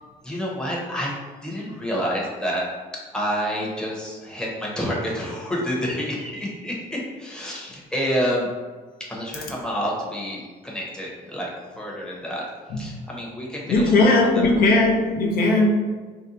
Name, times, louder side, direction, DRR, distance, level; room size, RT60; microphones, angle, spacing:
voice 1, 0.2-1.1 1.4-2.7 2.9-8.5 9.1-12.4 12.8-13.9, equal, 5° left, -4 dB, 0.8 m, -28 dB
voice 2, 13.7-15.7, left 2 dB, 60° left, 0 dB, 0.6 m, -18 dB
2.7 x 2.1 x 3.9 m, 1.4 s
cardioid pair, 110°, 17 cm